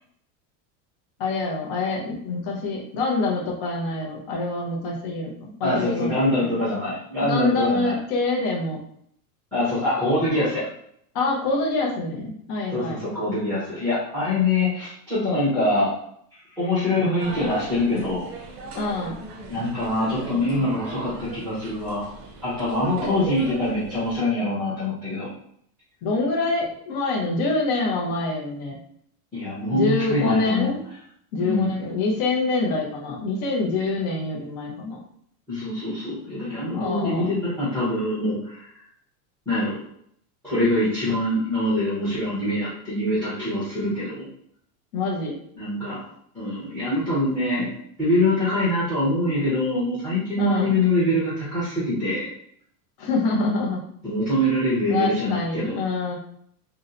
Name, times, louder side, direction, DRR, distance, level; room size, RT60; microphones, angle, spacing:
voice 1, 1.2-6.5 7.2-8.8 11.1-13.0 18.8-19.2 23.0-23.1 26.0-28.8 29.7-30.8 31.3-35.0 36.7-37.3 44.9-45.4 50.4-50.8 53.0-53.8 54.9-56.2, left 3 dB, 30° left, -2 dB, 0.6 m, -25 dB
voice 2, 5.6-8.0 9.5-10.7 12.7-15.9 16.3-18.3 19.5-22.1 22.4-25.3 29.3-30.7 31.4-31.7 35.5-38.7 39.5-39.8 40.4-44.3 45.6-46.1 46.3-47.7 48.0-52.3 54.0-55.8, left 1 dB, ahead, -9 dB, 0.7 m, -24 dB
sound 1, 17.2-24.2, right 4 dB, 45° right, 0.6 m, -37 dB
2.7 x 2.1 x 3.7 m, 0.67 s
supercardioid pair, 170°, 47 cm